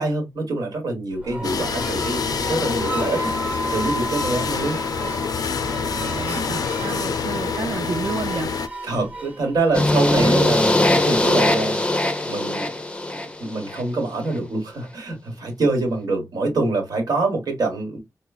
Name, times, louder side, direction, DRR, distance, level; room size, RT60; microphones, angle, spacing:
voice 1, 0.0-3.3 3.7-4.8 5.9-6.2 8.8-11.8 12.2-12.7 13.4-18.0, right 2 dB, 85° right, 1.2 m, -25 dB
sound 1, 1.1-10.5, right 2 dB, 25° right, 0.9 m, -33 dB
sound 2, 1.4-8.7, left 6 dB, 75° left, 0.4 m, -26 dB
voice 2, 6.0-8.5, right 5 dB, 50° right, 0.4 m, -30 dB
sound 3, 9.7-13.8, left 1 dB, 15° left, 0.5 m, -20 dB
4.4 x 2.1 x 2.3 m
wide cardioid pair, 100°, 6 cm